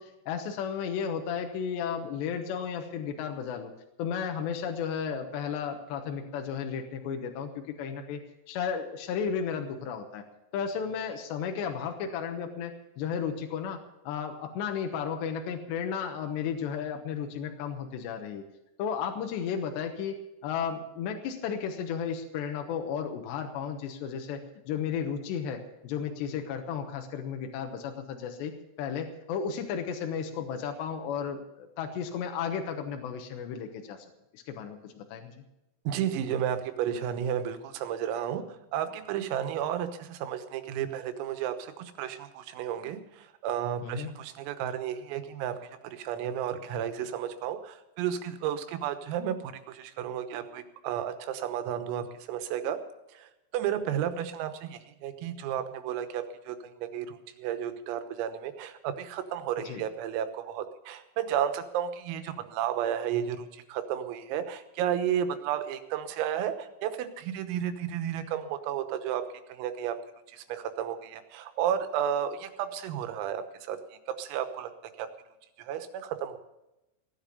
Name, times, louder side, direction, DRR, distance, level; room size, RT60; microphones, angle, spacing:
voice 1, 0.0-3.7 4.0-8.2 8.5-10.2 10.5-18.4 18.8-24.4 24.7-28.5 28.8-34.1 34.3-35.4 43.8-44.1 59.6-59.8, left 7 dB, 70° left, 4 dB, 2.9 m, -34 dB
voice 2, 35.9-52.8 53.1-69.2 69.5-70.0 70.3-73.8 74.2-74.7 75.0-75.1 75.6-76.4, right 9 dB, 90° right, 9 dB, 3.8 m, -32 dB
16.5 x 10.0 x 6.9 m, 0.92 s
omnidirectional pair, 5.9 m